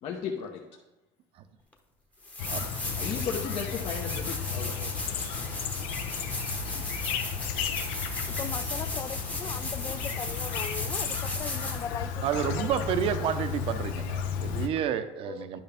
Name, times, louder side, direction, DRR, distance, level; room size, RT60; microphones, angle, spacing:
voice 1, 0.0-0.6 2.5-4.8 14.0-14.1, left 6 dB, 50° left, -1 dB, 0.9 m, -36 dB
sound 1, 1.7-1.8 2.2-12.0 14.8-14.9, left 2 dB, 10° left, 1.0 m, -36 dB
Chirp tweet, 2.4-14.7, left 6 dB, 80° left, 0.9 m, -34 dB
voice 2, 4.6-5.2 8.3-12.9 13.3-13.4 15.2-15.6, left 8 dB, 25° left, 15 dB, 0.3 m, -40 dB
voice 3, 12.2-15.6, right 9 dB, 50° right, 10 dB, 0.7 m, -30 dB
10.5 x 5.7 x 3.5 m, 0.98 s
cardioid pair, 135°, 12 cm